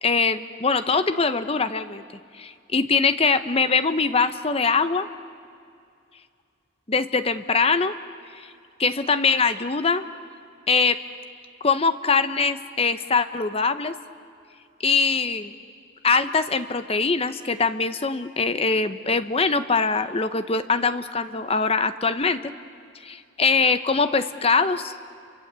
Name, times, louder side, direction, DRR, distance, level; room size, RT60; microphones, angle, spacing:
voice 1, 0.0-2.0 2.4-5.1 6.9-7.9 8.8-10.0 10.7-11.0 11.6-13.9 14.8-15.5 16.0-22.5 23.0-24.9, left 4 dB, 30° left, 11 dB, 0.9 m, -22 dB
30.0 x 24.5 x 8.2 m, 2.4 s
head